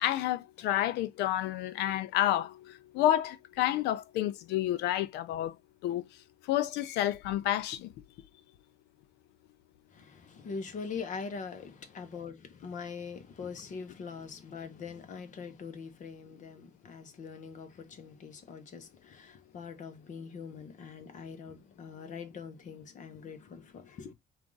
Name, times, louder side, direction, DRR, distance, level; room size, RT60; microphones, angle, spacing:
voice 1, 0.0-2.5 2.9-5.5 5.8-6.0 6.5-7.9, left 13 dB, 85° left, 0.5 m, -29 dB
voice 2, 9.9-24.1, left 5 dB, 50° left, 1.0 m, -43 dB
4.5 x 2.5 x 3.8 m
cardioid pair, 110°, 17 cm